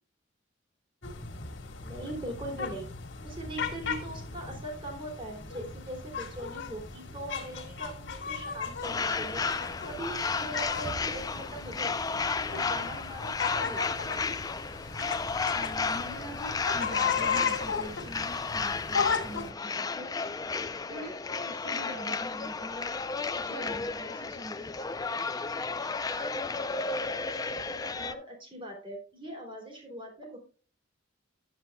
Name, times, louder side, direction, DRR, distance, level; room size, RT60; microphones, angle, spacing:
sound 1, 1.0-19.5, left 5 dB, 65° left, 1.9 m, -36 dB
voice 1, 1.8-2.9 3.2-9.6 9.8-14.1 27.5-30.4, right 1 dB, 25° right, 0 dB, 2.8 m, -41 dB
sound 2, 8.8-28.1, left 4 dB, 20° left, 0.4 m, -33 dB
voice 2, 15.5-20.2 20.9-23.0 23.3-24.8, equal, 60° right, 1 dB, 1.9 m, -44 dB
11.0 x 7.7 x 2.2 m, 0.37 s
head